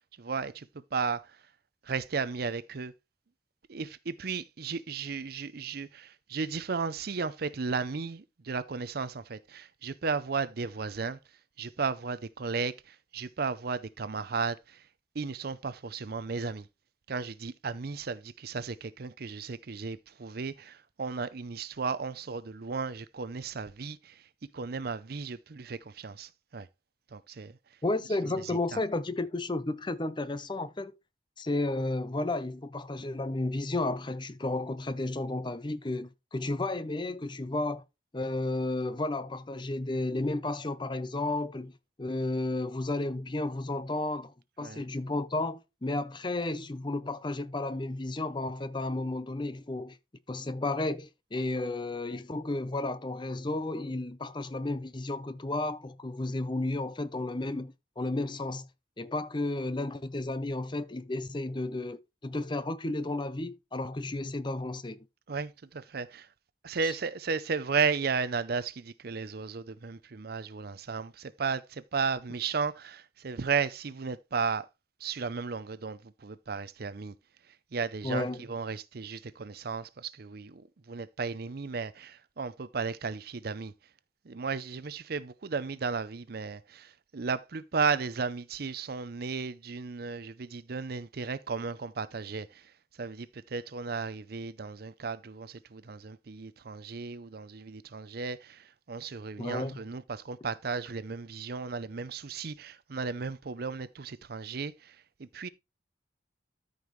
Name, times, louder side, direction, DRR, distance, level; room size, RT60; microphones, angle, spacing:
voice 1, 0.2-1.4 1.8-2.9 3.7-11.2 11.6-14.9 15.1-16.7 17.1-24.2 24.5-26.7 27.1-27.6 28.4-28.8 44.6-44.8 65.3-66.3 66.6-74.7 75.0-77.1 77.7-83.7 84.2-92.7 93.0-105.5, right 5 dB, 55° right, 0.6 m, -34 dB
voice 2, 27.8-30.9 31.4-37.8 38.1-41.7 42.0-50.0 50.3-58.7 59.0-65.1 66.8-66.9 78.0-78.4 99.4-99.8, left 2 dB, 25° left, 0.6 m, -32 dB
13.0 x 5.4 x 3.1 m
head